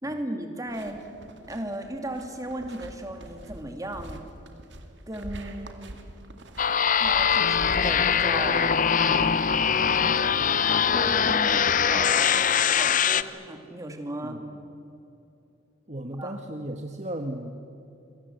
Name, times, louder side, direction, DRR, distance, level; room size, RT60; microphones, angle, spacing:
voice 1, 0.0-1.0 1.5-4.2 5.1-6.0 7.0-8.8 9.1-10.4 10.9-12.2 12.7-14.4 16.2-16.4, right 1 dB, 15° right, 4 dB, 2.5 m, -36 dB
sound 1, 0.7-8.3, right 1 dB, 60° right, 2.3 m, -43 dB
sound 2, 6.6-13.2, left 7 dB, 40° left, 0.7 m, -22 dB
voice 2, 15.9-17.5, right 1 dB, 35° right, 4 dB, 1.3 m, -35 dB
28.0 x 23.0 x 8.0 m, 2.7 s
head